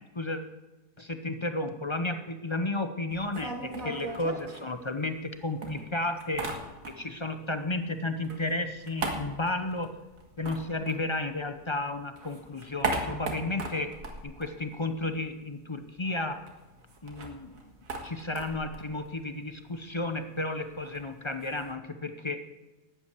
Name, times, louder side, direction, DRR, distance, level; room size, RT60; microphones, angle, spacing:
voice 1, 1.0-6.5 6.9-9.9 10.4-13.9 14.2-16.4 17.0-17.5 18.0-22.4, left 2 dB, 30° left, 8 dB, 0.5 m, -33 dB
sound 1, 3.1-5.3 5.6-7.2 7.5-11.7 12.0-15.3 15.6-15.7 15.9-21.7, right 2 dB, 75° right, 2.1 m, -38 dB
12.0 x 8.6 x 8.2 m, 1.1 s
omnidirectional pair, 1.5 m